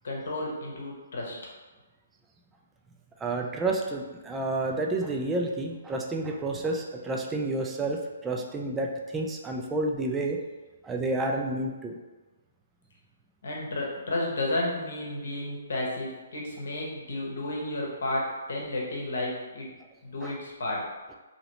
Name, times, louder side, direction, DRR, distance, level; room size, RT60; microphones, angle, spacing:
voice 1, 0.0-1.4 13.4-19.7 20.0-20.9, left 1 dB, 65° left, -2 dB, 0.9 m, -32 dB
voice 2, 3.2-10.4 10.8-12.0 20.2-20.4, right 2 dB, 15° right, 0 dB, 0.4 m, -30 dB
2.8 x 2.8 x 2.9 m, 1.2 s
figure-of-eight pair, 130°, 0 cm